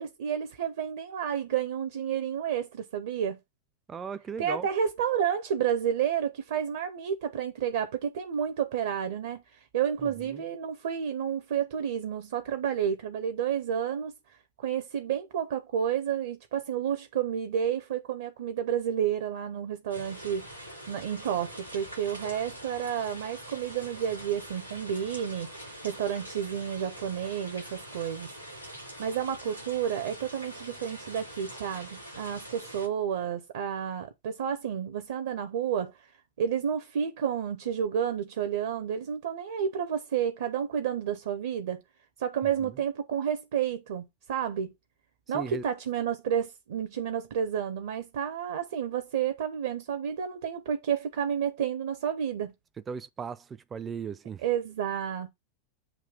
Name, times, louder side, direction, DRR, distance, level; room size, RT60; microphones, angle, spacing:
voice 1, 0.0-3.4 4.4-28.3 29.0-36.1 36.4-41.8 42.2-44.7 45.3-52.5 54.4-55.3, right 8 dB, 60° right, 0.7 m, -31 dB
voice 2, 3.9-4.7 10.3-10.4 42.6-42.7 45.3-45.6 52.9-54.4, right 6 dB, 20° right, 0.4 m, -37 dB
sound 1, 19.9-32.9, equal, 85° left, 3.8 m, -44 dB
7.4 x 2.8 x 5.1 m
figure-of-eight pair, 90°, 0 cm